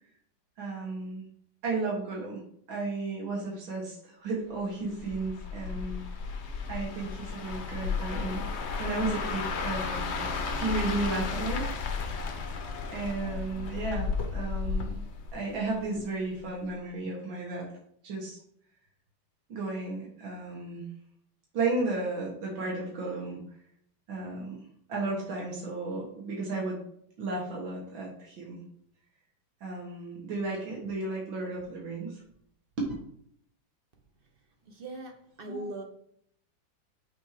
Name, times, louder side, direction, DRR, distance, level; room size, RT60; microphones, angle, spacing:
voice 1, 0.6-1.3 1.6-2.4 2.7-6.0 6.7-8.5 8.8-10.3 10.5-11.7 12.9-15.0 15.3-17.7 18.0-18.4 19.5-20.8 21.5-23.4 24.1-24.6 24.9-26.8 27.2-28.6 29.6-32.2 32.8-32.9 35.5-35.7, right 3 dB, 85° right, 2.3 m, -33 dB
sound 1, 4.9-16.0 16.4-16.6, left 4 dB, 50° left, 0.8 m, -34 dB
voice 2, 34.7-35.8, right 2 dB, 40° right, 0.8 m, -40 dB
6.0 x 4.5 x 4.9 m
omnidirectional pair, 2.1 m